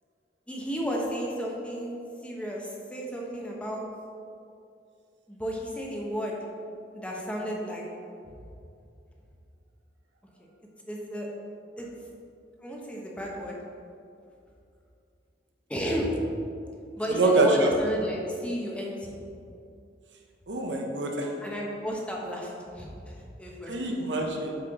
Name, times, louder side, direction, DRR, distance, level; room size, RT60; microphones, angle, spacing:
voice 1, 0.5-2.0 2.2-3.8 5.3-6.4 6.9-7.8 10.9-11.3 11.8-11.9 12.6-13.6 15.7-16.2 17.0-19.1 21.4-23.9, equal, 5° left, -2 dB, 1.0 m, -33 dB
voice 2, 17.1-17.7 20.5-21.3 23.7-24.5, right 2 dB, 75° right, 1 dB, 1.0 m, -25 dB
8.2 x 4.5 x 4.8 m, 2.5 s
head